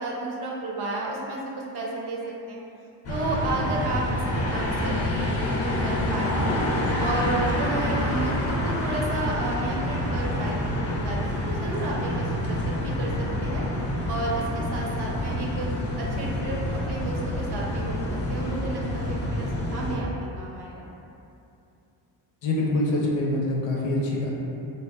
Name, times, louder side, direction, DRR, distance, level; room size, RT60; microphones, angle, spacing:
voice 1, 0.0-2.6 3.1-4.1 4.4-6.6 7.0-13.6 14.1-15.7 16.0-20.1 20.4-20.9, right 2 dB, 60° right, -3 dB, 0.6 m, -32 dB
sound 1, 3.0-20.0, left 1 dB, 35° left, 0.4 m, -27 dB
voice 2, 22.4-24.3, left 1 dB, 80° left, -3 dB, 0.6 m, -25 dB
2.6 x 2.1 x 2.3 m, 2.7 s
cardioid pair, 80°, 46 cm